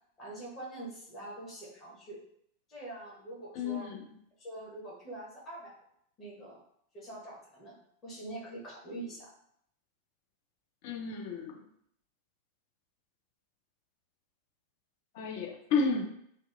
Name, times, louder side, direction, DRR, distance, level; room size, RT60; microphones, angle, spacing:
voice 1, 0.2-2.2 2.7-3.9 4.4-5.7 6.2-6.6 6.9-7.7 8.0-9.3, right 2 dB, 30° left, -5 dB, 1.1 m, -44 dB
voice 2, 3.6-4.0 10.8-11.6 15.1-16.1, left 4 dB, 50° left, 3 dB, 0.4 m, -32 dB
2.7 x 2.2 x 2.4 m, 0.69 s
figure-of-eight pair, 90°, 0 cm